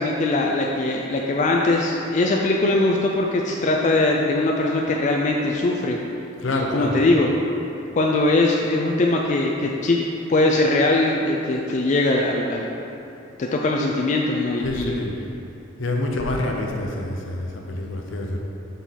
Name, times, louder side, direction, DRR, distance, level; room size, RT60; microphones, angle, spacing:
voice 1, 0.0-6.0 6.5-7.3 8.0-10.0 10.3-12.8 13.4-14.9, left 2 dB, 40° left, 0 dB, 0.3 m, -21 dB
voice 2, 6.4-7.0 14.6-15.1 15.8-18.4, left 2 dB, 70° left, 1 dB, 0.7 m, -27 dB
7.0 x 3.8 x 4.1 m, 2.8 s
head